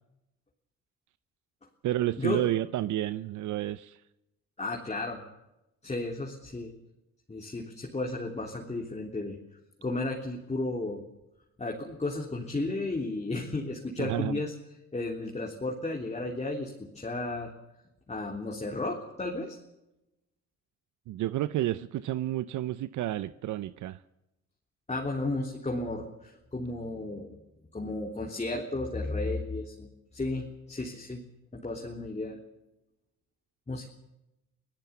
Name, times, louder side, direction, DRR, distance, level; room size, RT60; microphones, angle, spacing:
voice 1, 1.8-4.0 14.0-14.4 21.1-24.0, right 14 dB, 75° right, 16 dB, 0.7 m, -30 dB
voice 2, 4.6-5.2 5.8-6.7 7.3-9.4 9.8-11.0 11.6-14.5 14.9-17.5 18.1-19.6 24.9-27.4 27.7-31.2 31.5-32.4 33.7-33.9, left 2 dB, 20° left, 0 dB, 3.4 m, -33 dB
25.5 x 16.5 x 7.1 m, 0.91 s
cardioid pair, 90°, 30 cm